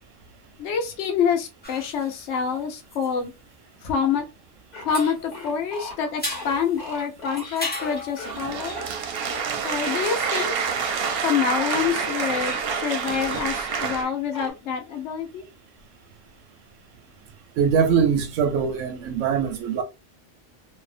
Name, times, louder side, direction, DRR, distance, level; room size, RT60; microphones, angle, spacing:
voice 1, 0.6-3.3 3.8-4.2 4.8-8.8 9.6-10.6 11.2-15.5, left 7 dB, 70° left, 0.9 m, -26 dB
sound 1, 1.6-4.6 4.9-9.2, left 2 dB, 15° left, 0.4 m, -37 dB
sound 2, 4.7-11.2 11.6-14.5, left 2 dB, 40° left, 1.0 m, -38 dB
sound 3, 8.2-14.0, right 6 dB, 65° right, 0.7 m, -27 dB
voice 2, 17.6-19.8, right 7 dB, 90° right, 1.0 m, -22 dB
2.7 x 2.1 x 2.4 m
omnidirectional pair, 1.3 m